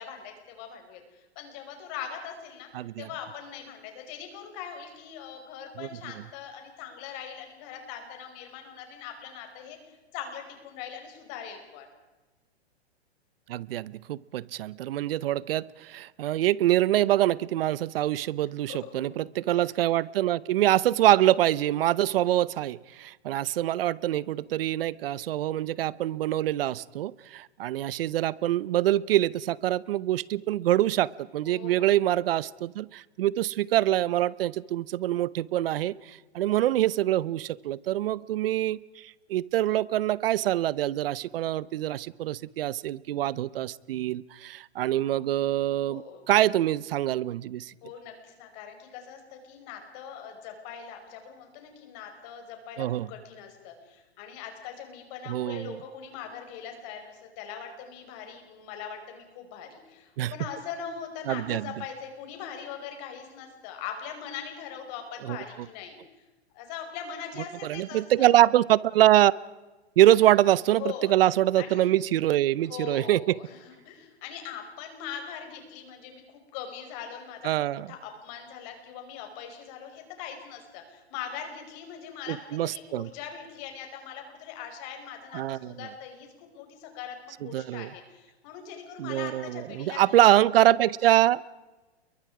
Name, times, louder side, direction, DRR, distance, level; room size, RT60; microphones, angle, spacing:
voice 1, 0.0-2.7 3.0-11.9 18.7-19.0 19.5-19.6 31.4-32.0 45.9-46.2 47.8-66.0 66.5-68.3 70.0-70.1 70.7-71.2 71.6-71.9 72.6-76.2 76.5-90.2, left 8 dB, 40° left, 4 dB, 5.5 m, -41 dB
voice 2, 2.7-3.1 5.8-5.9 13.5-47.7 52.8-53.1 55.3-55.8 60.2-60.3 61.3-61.7 65.2-65.4 67.6-69.3 70.0-73.4 77.4-77.9 82.3-83.1 85.3-85.8 87.4-87.9 89.0-91.4, right 13 dB, 60° right, 21 dB, 0.8 m, -25 dB
29.5 x 23.0 x 4.9 m, 1.2 s
hypercardioid pair, 140°, 33 cm